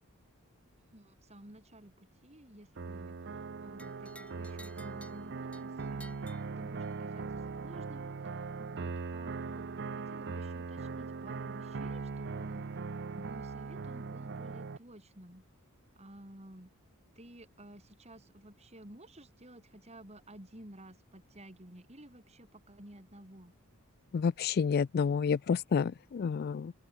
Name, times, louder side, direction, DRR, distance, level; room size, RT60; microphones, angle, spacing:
voice 1, 0.9-8.1 8.6-12.7 13.2-15.4 16.0-16.7 17.2-23.5, right 1 dB, 30° right, 5.2 m, -53 dB
sound 1, 2.8-14.8, right 4 dB, 55° right, 0.6 m, -40 dB
sound 2, 3.8-7.2, left 2 dB, 5° left, 4.0 m, -56 dB
voice 2, 24.1-26.7, left 6 dB, 45° left, 0.3 m, -29 dB
open air
head